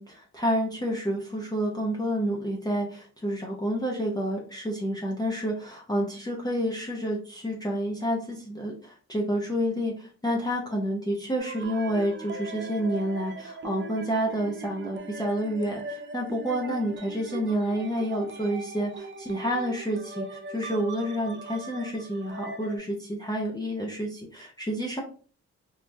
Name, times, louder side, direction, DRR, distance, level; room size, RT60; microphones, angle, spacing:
voice 1, 0.0-25.0, equal, 15° left, -2 dB, 0.5 m, -29 dB
sound 1, 11.4-22.8, right 3 dB, 40° right, 0.4 m, -40 dB
3.2 x 2.3 x 2.5 m, 0.41 s
wide cardioid pair, 135°, 29 cm